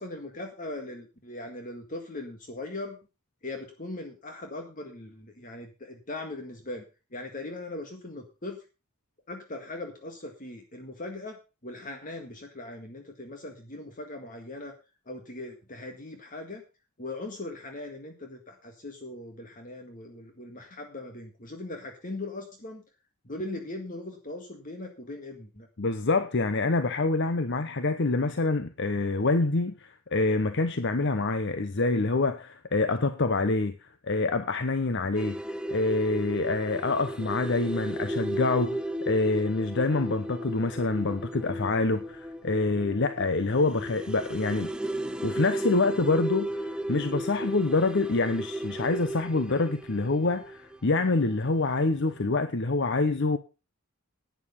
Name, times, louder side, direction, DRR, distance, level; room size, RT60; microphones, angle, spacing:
voice 1, 0.0-3.0 3.4-6.9 7.1-8.6 9.3-14.7 15.1-16.6 17.0-22.8 23.2-25.7, left 2 dB, 40° left, 1.8 m, -39 dB
voice 2, 25.8-35.4 35.7-44.7 45.2-53.4, left 3 dB, 55° left, 0.9 m, -26 dB
sound 1, 35.2-51.8 52.1-52.2, right 1 dB, 5° right, 0.6 m, -35 dB
11.5 x 9.4 x 5.5 m
head